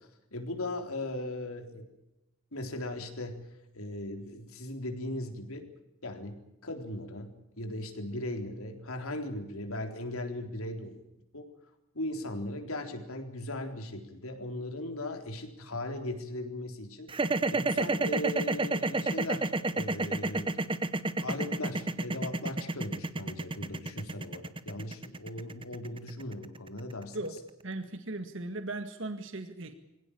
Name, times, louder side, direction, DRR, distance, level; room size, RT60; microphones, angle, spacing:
voice 1, 0.0-1.9 2.5-3.5 3.7-5.7 6.0-11.0 11.3-11.5 11.9-17.1 17.5-20.6 21.2-27.2, left 1 dB, 80° left, 4 dB, 3.9 m, -38 dB
sound 1, 17.1-27.3, right 2 dB, 25° right, 1.0 m, -30 dB
voice 2, 27.6-29.7, right 2 dB, 60° right, 8 dB, 1.9 m, -37 dB
24.5 x 17.0 x 8.7 m, 0.91 s
head